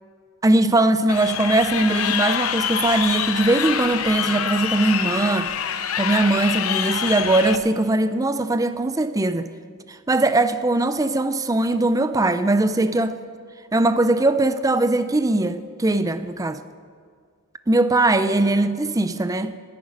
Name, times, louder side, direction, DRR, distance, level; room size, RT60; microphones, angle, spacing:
voice 1, 0.4-5.5 6.0-9.5 9.9-13.2 13.7-16.6 17.7-19.5, right 2 dB, 15° right, 0.5 m, -20 dB
Crowd, 1.1-7.6, left 8 dB, 80° left, 0.7 m, -25 dB
11.5 x 9.4 x 9.3 m
head